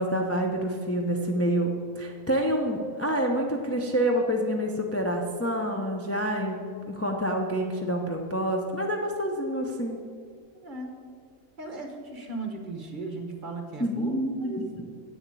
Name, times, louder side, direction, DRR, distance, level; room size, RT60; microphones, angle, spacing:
voice 1, 0.0-10.0 13.8-14.7, equal, 20° left, 1 dB, 0.4 m, -27 dB
voice 2, 10.6-11.1 11.6-14.6, right 3 dB, 35° right, 4 dB, 1.2 m, -37 dB
8.1 x 7.0 x 8.2 m, 2.2 s
omnidirectional pair, 1.6 m